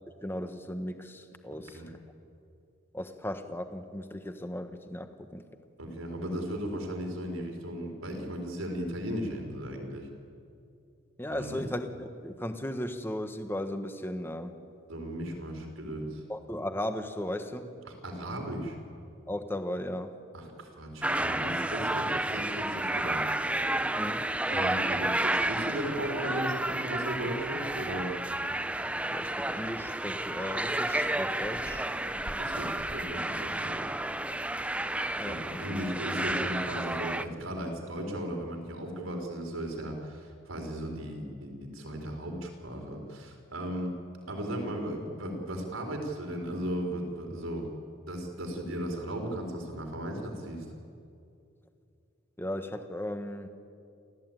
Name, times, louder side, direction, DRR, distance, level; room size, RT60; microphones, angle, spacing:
voice 1, 0.2-1.8 2.9-5.4 11.2-14.5 16.3-17.7 19.3-20.2 24.0-24.3 29.1-31.8 35.2-35.7 52.4-53.5, left 1 dB, 10° left, 8 dB, 1.2 m, -36 dB
voice 2, 1.5-1.9 5.8-10.1 11.3-11.7 14.9-16.2 17.9-18.8 20.3-23.2 24.5-28.2 32.4-33.8 35.2-43.9 44.3-47.7 48.1-50.7, equal, 75° right, 3 dB, 4.2 m, -36 dB
sound 1, 21.0-37.2, right 1 dB, 5° right, 0.5 m, -31 dB
28.5 x 14.5 x 9.1 m, 2.5 s
head